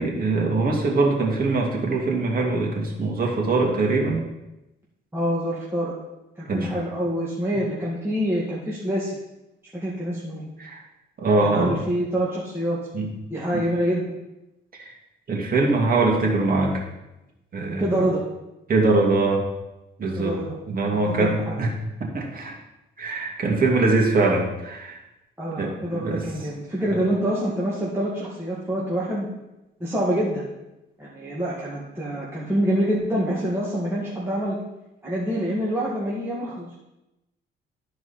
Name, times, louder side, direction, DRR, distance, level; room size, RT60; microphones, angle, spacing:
voice 1, 0.0-4.2 6.5-6.7 10.6-10.8 11.2-11.8 12.9-13.1 13.5-13.6 14.7-14.9 15.3-16.8 17.5-18.0 18.7-19.4 20.0-20.4 20.7-21.7 22.0-22.5 23.0-25.0 25.6-26.2 26.9-27.0, right 3 dB, 45° right, 0 dB, 2.2 m, -22 dB
voice 2, 5.1-5.9 6.4-9.1 9.7-10.5 11.4-12.8 13.3-14.1 17.8-18.2 20.2-20.6 21.2-21.6 25.4-29.3 29.8-30.4 31.0-34.6 35.0-36.7, equal, 10° right, -7 dB, 1.9 m, -26 dB
13.0 x 4.7 x 4.3 m, 0.94 s
cardioid pair, 90°, 20 cm